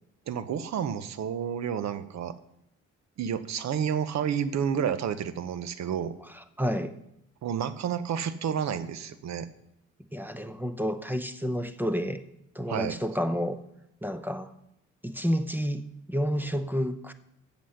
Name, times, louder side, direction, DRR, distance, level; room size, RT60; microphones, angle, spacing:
voice 1, 0.3-2.3 3.2-6.1 7.4-9.5 12.7-12.9, right 8 dB, 65° right, 13 dB, 0.9 m, -30 dB
voice 2, 6.3-6.9 10.1-12.2 12.5-13.6 14.0-14.5 15.0-15.8 16.1-17.1, equal, 5° right, 10 dB, 0.7 m, -30 dB
7.7 x 7.1 x 6.4 m, 0.81 s
cardioid pair, 90°, 30 cm